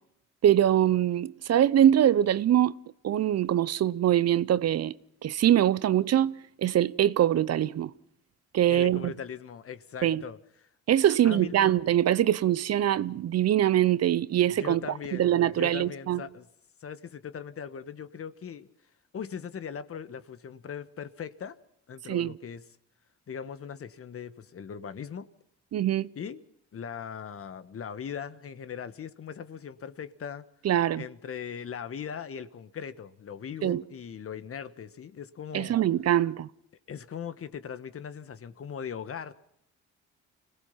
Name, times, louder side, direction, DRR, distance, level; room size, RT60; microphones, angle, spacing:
voice 1, 0.4-2.7 3.0-4.9 5.2-7.9 8.5-9.1 10.0-10.2 10.9-14.8 15.1-16.2 22.1-22.3 25.7-26.1 30.6-31.0 33.6-33.8 35.5-36.5, right 11 dB, 55° right, 0.7 m, -23 dB
voice 2, 8.7-10.4 11.1-11.6 14.6-15.3 15.5-16.5 16.8-18.7 19.1-21.6 21.9-22.6 23.3-25.3 26.1-26.4 26.7-30.4 31.0-35.8 36.9-39.3, left 7 dB, 50° left, 1.4 m, -39 dB
26.0 x 18.0 x 5.8 m
cardioid pair, 90°, 30 cm